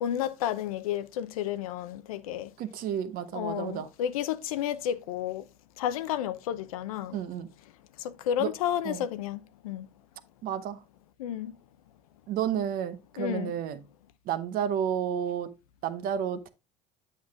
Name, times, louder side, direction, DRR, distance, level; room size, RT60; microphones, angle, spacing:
voice 1, 0.0-2.5 3.3-5.4 5.8-7.2 8.0-9.9 11.2-11.6 13.2-13.5, left 10 dB, 80° left, 0.6 m, -31 dB
voice 2, 2.6-3.9 7.1-7.5 8.4-8.5 8.8-9.1 10.4-10.8 12.3-13.8 14.3-15.5 15.8-16.5, right 9 dB, 55° right, 0.8 m, -31 dB
8.1 x 7.7 x 2.4 m
hypercardioid pair, 75°, 18 cm